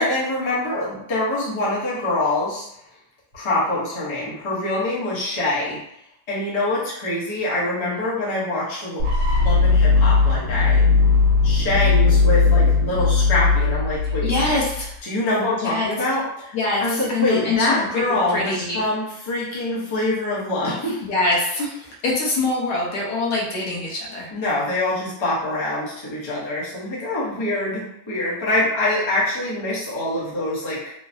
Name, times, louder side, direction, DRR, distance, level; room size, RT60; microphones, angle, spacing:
voice 1, 0.0-2.6 3.3-5.8 6.3-9.1 9.4-10.8 11.4-14.3 15.0-16.5 16.8-21.0 24.3-30.8, left 2 dB, 25° left, -7 dB, 0.6 m, -24 dB
sound 1, 9.0-14.9, left 4 dB, 80° right, 1.2 m, -18 dB
voice 2, 14.2-14.9 15.6-15.9 16.5-16.8 17.1-18.8 21.0-24.3, left 2 dB, 80° left, -4 dB, 1.4 m, -24 dB
3.6 x 2.0 x 2.6 m, 0.75 s
omnidirectional pair, 1.7 m